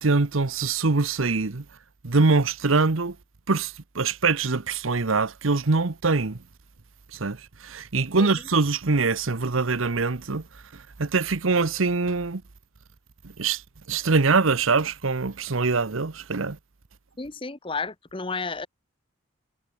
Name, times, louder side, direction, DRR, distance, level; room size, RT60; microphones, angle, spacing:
voice 1, 0.0-1.6 2.0-3.1 3.5-6.4 7.1-7.4 7.6-10.4 10.7-12.4 13.4-13.6 13.9-16.6, right 4 dB, 85° right, 1.0 m, -23 dB
voice 2, 17.2-18.7, left 4 dB, 25° left, 0.9 m, -32 dB
head